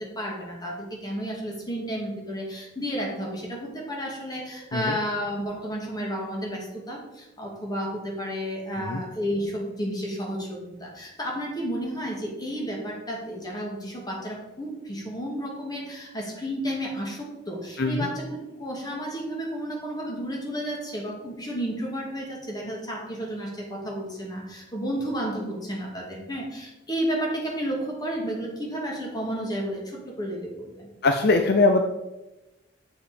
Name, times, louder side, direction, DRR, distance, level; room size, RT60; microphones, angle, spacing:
voice 1, 0.0-30.9, equal, 20° left, -1 dB, 2.2 m, -32 dB
voice 2, 31.0-31.8, left 3 dB, 55° left, 5 dB, 0.7 m, -21 dB
7.2 x 7.1 x 5.1 m, 0.99 s
head